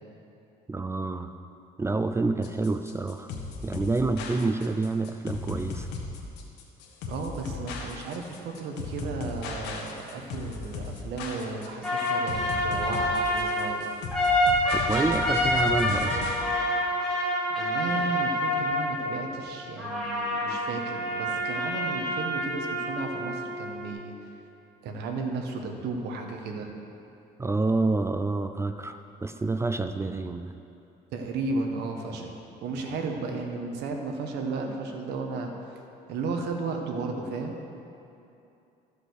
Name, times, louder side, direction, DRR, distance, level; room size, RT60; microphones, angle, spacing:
voice 1, 0.7-1.3 1.8-3.3 3.6-5.9 14.9-16.2 27.4-30.5, right 3 dB, 15° right, 8 dB, 0.4 m, -28 dB
sound 1, 2.4-16.4, left 4 dB, 85° left, 1.5 m, -36 dB
voice 2, 7.1-13.9 17.5-24.3 24.8-26.7 31.1-32.3 32.6-35.5 36.1-37.6, right 3 dB, 80° right, 3 dB, 1.3 m, -34 dB
sound 2, 11.8-19.4 19.8-23.8, equal, 5° left, 2.2 m, -27 dB
14.0 x 5.1 x 6.4 m, 2.8 s
cardioid pair, 110°, 17 cm